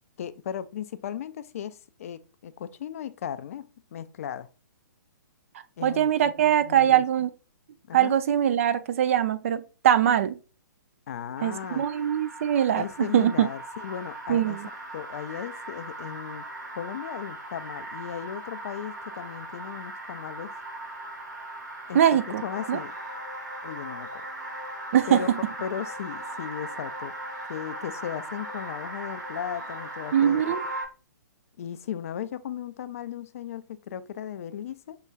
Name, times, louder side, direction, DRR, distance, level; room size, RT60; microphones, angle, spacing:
voice 1, 0.2-3.6 3.9-4.5 5.8-7.0 7.9-8.1 11.1-11.8 12.7-14.6 14.9-16.5 16.7-20.5 21.9-22.0 22.4-22.9 23.6-24.2 25.1-25.3 25.6-27.1 27.5-30.4 31.6-35.0, left 9 dB, 45° left, 0.4 m, -36 dB
voice 2, 5.8-7.3 7.9-10.4 11.4-13.5 14.3-14.7 21.9-22.4 22.7-22.8 24.9-25.4 30.1-30.6, right 10 dB, 45° right, 0.4 m, -22 dB
sound 1, 11.4-30.8, right 1 dB, 70° right, 1.7 m, -38 dB
5.6 x 3.0 x 2.3 m
figure-of-eight pair, 125°, 10 cm